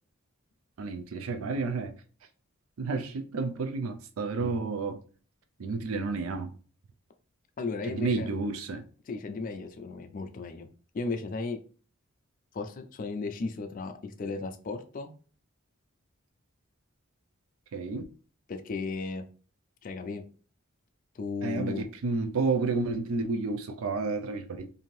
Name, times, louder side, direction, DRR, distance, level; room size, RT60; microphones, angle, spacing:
voice 1, 0.8-2.0 2.8-5.0 5.6-6.5 7.8-8.9 17.7-18.1 21.4-24.7, right 3 dB, 80° right, 0.4 m, -31 dB
voice 2, 7.6-8.3 9.1-10.7 10.9-11.6 12.5-15.1 18.5-19.3 19.8-20.2 21.2-21.8, left 3 dB, 40° left, 0.4 m, -35 dB
2.7 x 2.5 x 3.0 m
head